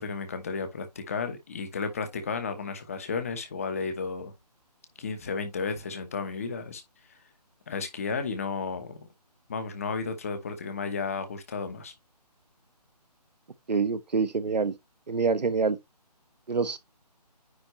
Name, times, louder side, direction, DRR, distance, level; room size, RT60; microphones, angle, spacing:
voice 1, 0.0-4.3 5.0-6.8 7.1-7.2 7.7-9.1 9.5-11.9, left 5 dB, 20° left, 1.1 m, -33 dB
voice 2, 13.7-14.7 15.1-15.8 16.5-16.8, right 5 dB, 80° right, 1.3 m, -26 dB
9.6 x 3.8 x 3.1 m
hypercardioid pair, 175°, 21 cm